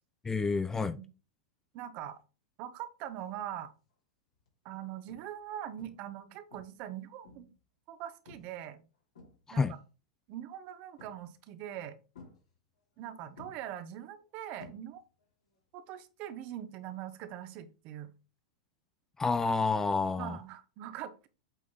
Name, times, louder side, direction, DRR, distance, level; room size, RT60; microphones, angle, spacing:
voice 1, 0.2-1.0 9.6-9.7 19.2-20.4, left 4 dB, 15° left, 0.4 m, -29 dB
voice 2, 1.7-2.2 2.6-3.7 4.6-7.5 7.9-8.8 9.5-9.6 10.3-12.0 13.0-15.0 15.7-18.1 20.2-21.3, right 11 dB, 50° right, 1.0 m, -42 dB
sound 1, 3.4-3.8 4.3-4.5 5.1-5.5 5.8-6.2 6.5-7.6 8.3-8.6 8.9-9.8 11.0-11.5 12.1-13.0 13.4-15.3 15.5-15.9 18.0-18.1, left 3 dB, 80° left, 3.1 m, -55 dB
8.2 x 3.8 x 3.7 m
hypercardioid pair, 110°, 3 cm